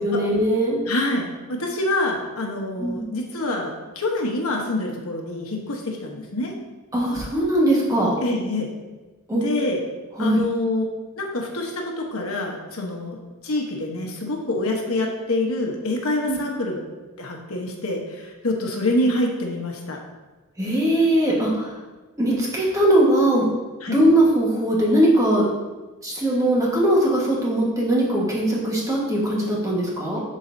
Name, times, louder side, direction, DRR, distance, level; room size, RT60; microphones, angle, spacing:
voice 1, 0.0-0.8 2.8-3.0 6.9-8.1 9.3-9.4 10.2-10.4 16.3-16.4 20.6-21.7 22.2-23.4 23.9-25.4 26.0-30.2, right 1 dB, 15° right, -4 dB, 1.4 m, -20 dB
voice 2, 0.9-6.5 8.2-8.7 9.3-9.8 10.2-10.8 11.2-13.2 13.4-16.8 17.2-20.0 23.8-24.0, left 2 dB, 80° left, 1 dB, 1.1 m, -26 dB
11.5 x 4.2 x 2.7 m, 1.2 s
head